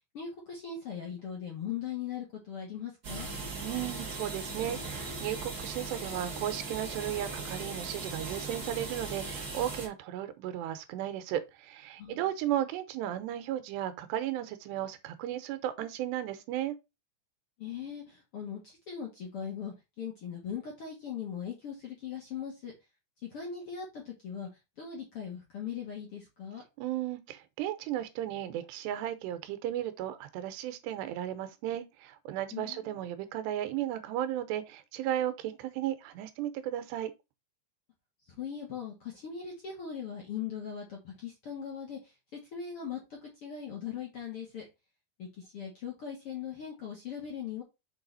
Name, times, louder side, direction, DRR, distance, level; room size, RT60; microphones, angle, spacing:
voice 1, 0.1-3.3 12.0-12.2 17.6-22.7 23.2-24.5 24.8-26.6 32.5-33.0 38.3-42.0 42.3-44.7 45.2-47.6, left 8 dB, 50° left, 1.7 m, -40 dB
sound 1, 3.0-9.9, right 3 dB, 50° right, 1.1 m, -38 dB
voice 2, 3.6-16.7 26.8-37.1, right 12 dB, 85° right, 3.0 m, -35 dB
6.7 x 4.9 x 4.0 m
omnidirectional pair, 4.8 m